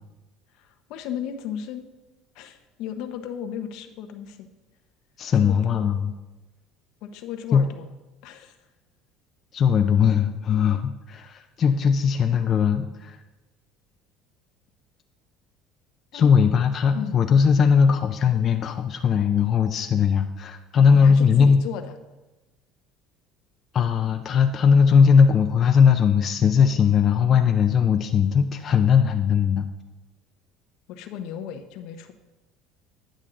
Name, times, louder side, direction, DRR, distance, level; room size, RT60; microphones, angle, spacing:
voice 1, 0.6-1.9 2.3-4.5 5.4-5.9 7.0-7.9 8.2-8.6 16.1-16.3 16.9-17.2 20.9-21.8 30.9-32.1, left 9 dB, 70° left, 8 dB, 0.8 m, -35 dB
voice 2, 5.2-6.1 7.5-7.6 9.5-13.2 16.1-21.6 23.7-29.7, left 6 dB, 45° left, 6 dB, 0.5 m, -19 dB
10.0 x 6.4 x 3.8 m, 1.1 s
supercardioid pair, 85°, 0 cm